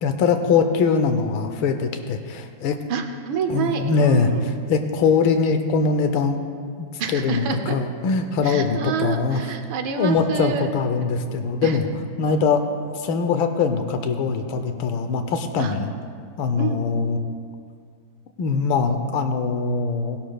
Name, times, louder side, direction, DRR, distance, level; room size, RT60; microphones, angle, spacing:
voice 1, 0.0-2.8 3.5-4.3 4.7-6.4 6.8-6.9 7.1-9.4 10.0-11.9 12.2-12.6 12.9-15.9 16.4-17.2 18.4-20.2, left 5 dB, 90° left, 7 dB, 1.6 m, -22 dB
voice 2, 2.9-4.4 7.0-7.8 8.4-10.7 11.6-11.8 15.6-15.7 16.6-16.8, right 6 dB, 85° right, 6 dB, 1.6 m, -27 dB
18.0 x 11.5 x 2.3 m, 2.1 s
omnidirectional pair, 2.1 m